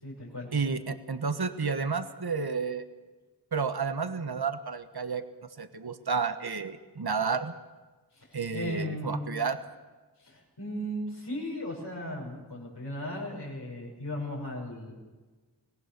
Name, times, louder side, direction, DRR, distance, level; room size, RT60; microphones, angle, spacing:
voice 1, 0.0-0.5 8.1-9.4 10.2-14.9, equal, 80° left, -4 dB, 6.3 m, -36 dB
voice 2, 0.5-2.8 3.5-5.2 5.6-7.5 8.3-9.6, right 5 dB, 65° right, 9 dB, 1.3 m, -31 dB
25.0 x 18.5 x 6.9 m, 1.3 s
wide cardioid pair, 55°, 40 cm